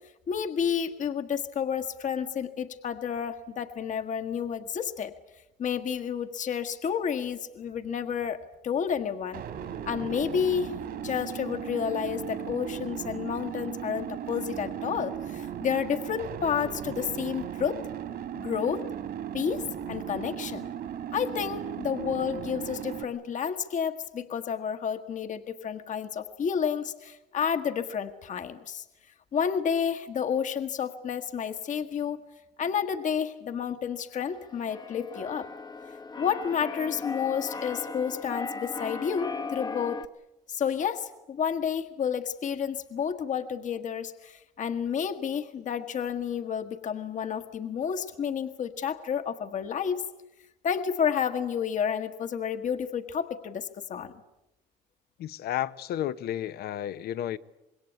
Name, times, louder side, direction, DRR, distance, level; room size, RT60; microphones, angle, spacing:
voice 1, 0.3-5.1 5.6-9.4 9.9-17.8 18.3-18.9 19.3-20.7 21.1-28.8 29.3-32.2 32.6-35.5 36.2-40.0 40.5-50.0 50.6-54.1, left 7 dB, 50° left, 1.5 m, -30 dB
sound 1, 9.3-23.0, right 10 dB, 65° right, 3.0 m, -37 dB
Keyboard (musical), 34.2-40.0, left 4 dB, 25° left, 1.0 m, -37 dB
voice 2, 55.2-57.4, left 11 dB, 70° left, 1.0 m, -32 dB
26.0 x 21.5 x 8.6 m
cardioid pair, 110°, 17 cm